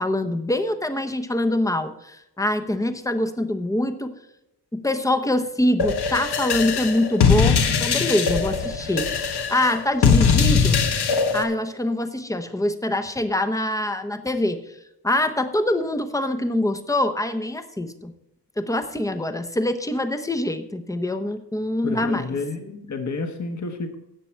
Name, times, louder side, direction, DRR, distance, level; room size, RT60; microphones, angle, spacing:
voice 1, 0.0-4.1 4.7-10.8 11.3-14.6 15.0-18.1 18.6-22.4, left 1 dB, 10° left, 9 dB, 0.8 m, -24 dB
sound 1, 5.8-11.4, left 5 dB, 70° left, 1.3 m, -21 dB
voice 2, 21.8-24.0, left 3 dB, 45° left, 6 dB, 1.4 m, -30 dB
14.0 x 8.4 x 4.5 m, 0.87 s
wide cardioid pair, 150°, 41 cm